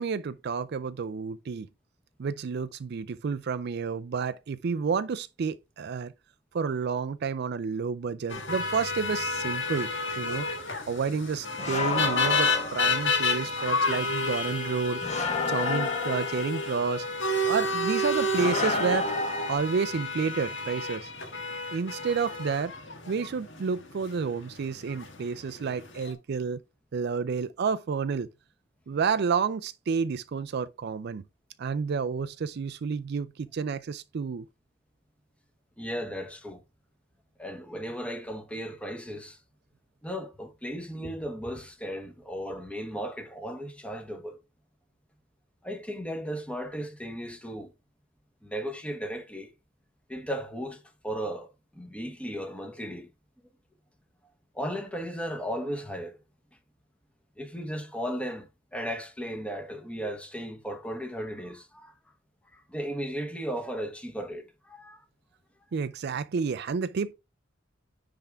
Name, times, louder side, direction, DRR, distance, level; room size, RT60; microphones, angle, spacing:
voice 1, 0.0-1.7 2.2-6.1 6.5-9.9 10.2-10.5 10.9-15.0 15.5-17.1 17.4-19.1 19.5-21.1 21.7-22.7 23.1-26.6 26.9-28.3 28.9-31.2 31.6-34.4 65.7-67.1, right 5 dB, 55° right, 0.4 m, -30 dB
sound 1, 8.3-26.1, left 2 dB, 60° left, 1.6 m, -31 dB
sound 2, 11.6-13.2 15.0-16.7 18.3-19.5, left 3 dB, 35° left, 1.2 m, -30 dB
voice 2, 35.8-36.6 37.4-39.4 40.0-44.4 45.6-47.7 48.4-49.5 50.1-53.1 54.5-56.2 57.4-61.9 62.5-65.0, equal, 5° left, 1.1 m, -36 dB
9.9 x 3.6 x 3.4 m
head